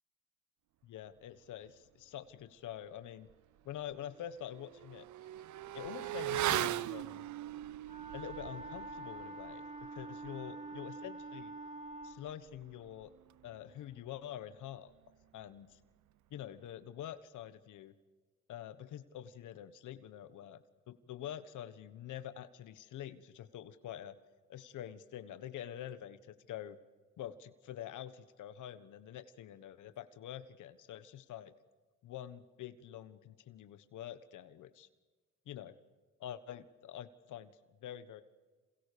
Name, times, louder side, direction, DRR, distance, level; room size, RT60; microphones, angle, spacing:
voice 1, 0.8-3.3 3.6-5.1 5.7-7.2 8.1-11.5 12.0-13.1 13.4-14.9 15.3-15.7 16.3-17.9 18.5-24.1 24.5-26.8 27.2-31.5 32.0-34.9 35.5-35.8 36.2-37.5 37.8-38.2, left 11 dB, 80° left, 13 dB, 1.4 m, -46 dB
Motorcycle / Accelerating revving vroom, 3.3-3.4 3.8-13.8 14.1-14.2, right 13 dB, 70° right, 0.8 m, -41 dB
Wind instrument woodwind instrument, 7.8-12.2, right 2 dB, 25° right, 4.0 m, -46 dB
29.5 x 27.5 x 6.9 m, 1.3 s
cardioid pair, 90°, 30 cm